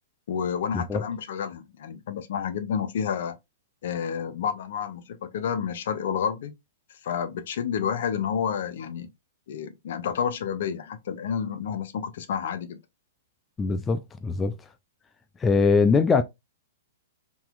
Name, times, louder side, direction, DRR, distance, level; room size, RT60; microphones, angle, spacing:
voice 1, 0.3-3.4 3.8-6.5 7.0-9.1 9.5-12.8, left 7 dB, 65° left, 0.6 m, -30 dB
voice 2, 13.6-14.6 15.4-16.2, left 4 dB, 15° left, 0.4 m, -22 dB
3.8 x 2.8 x 2.4 m
hypercardioid pair, 125°, 0 cm